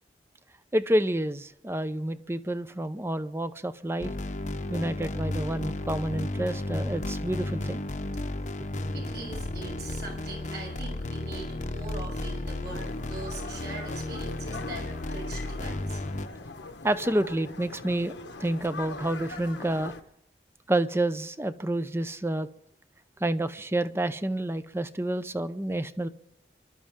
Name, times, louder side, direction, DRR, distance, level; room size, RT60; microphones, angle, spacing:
voice 1, 0.7-4.1 4.7-7.8 16.8-18.1 18.4-19.9 20.7-22.5 23.2-26.1, right 1 dB, 15° right, 12 dB, 0.6 m, -29 dB
sound 1, 4.0-16.3, left 1 dB, 40° left, 0.9 m, -33 dB
voice 2, 8.9-16.0, right 3 dB, 65° right, 0 dB, 7.0 m, -42 dB
sound 2, 12.6-20.0, left 3 dB, 85° left, 1.3 m, -42 dB
26.5 x 12.5 x 3.7 m, 0.74 s
head